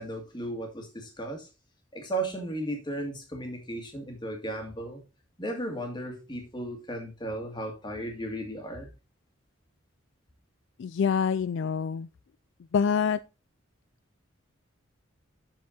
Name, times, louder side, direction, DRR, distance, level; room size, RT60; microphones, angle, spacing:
voice 1, 0.0-1.5 1.9-5.0 5.4-8.9, right 1 dB, 20° left, 1.9 m, -35 dB
voice 2, 10.8-12.1 12.7-13.2, left 6 dB, 60° left, 0.3 m, -26 dB
7.7 x 6.9 x 3.8 m
head